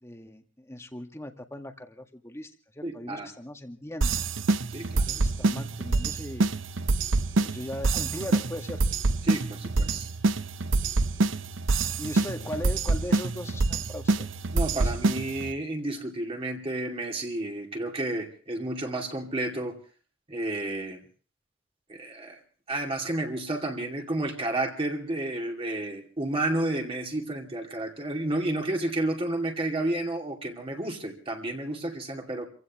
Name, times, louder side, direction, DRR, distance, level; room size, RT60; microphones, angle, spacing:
voice 1, 0.0-4.2 5.0-6.5 7.4-8.8 12.0-14.3 14.7-15.0, left 1 dB, 15° left, 5 dB, 1.8 m, -39 dB
voice 2, 2.8-3.3 4.7-5.0 9.3-10.1 14.5-19.8 20.3-21.0 21.9-22.4 22.7-32.5, right 1 dB, 30° right, 1 dB, 2.5 m, -31 dB
sound 1, 4.0-15.5, right 3 dB, 90° right, 0.8 m, -26 dB
29.5 x 16.0 x 3.0 m, 0.41 s
head